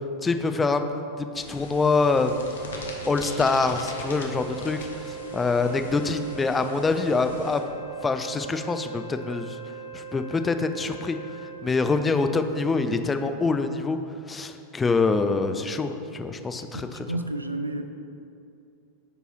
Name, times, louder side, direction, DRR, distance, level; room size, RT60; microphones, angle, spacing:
voice 1, 0.2-2.6 3.1-7.6 8.0-9.6 9.9-11.2 11.6-14.0 14.3-17.1, left 4 dB, 15° left, 8 dB, 0.3 m, -25 dB
sound 1, 1.3-7.6, left 2 dB, 65° left, 0.8 m, -41 dB
Wind instrument woodwind instrument, 2.5-11.7, right 7 dB, 35° left, 1.3 m, -40 dB
voice 2, 16.6-17.8, right 1 dB, 85° right, 6 dB, 0.3 m, -31 dB
5.0 x 4.7 x 4.5 m, 2.6 s
figure-of-eight pair, 90°, 0 cm